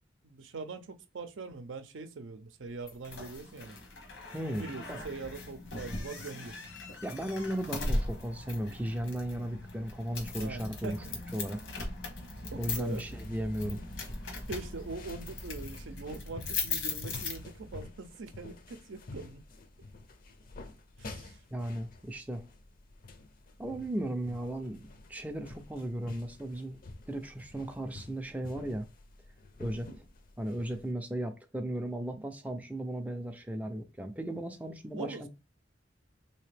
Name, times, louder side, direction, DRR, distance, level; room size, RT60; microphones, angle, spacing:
voice 1, 0.2-3.8 4.5-6.5 10.4-11.1 12.4-13.0 14.5-19.4 21.0-21.4 32.0-32.2 35.0-35.3, right 3 dB, 90° right, 0.6 m, -42 dB
sound 1, 2.9-17.8, left 2 dB, 80° left, 1.0 m, -39 dB
voice 2, 4.3-5.0 7.0-11.0 11.3-11.6 12.6-13.8 21.5-22.4 23.6-24.8 25.1-26.8 27.1-28.9 29.6-29.9 30.4-35.3, right 1 dB, 10° right, 0.3 m, -36 dB
sound 2, 12.2-30.9, left 2 dB, 50° left, 0.5 m, -49 dB
3.3 x 2.8 x 3.3 m
head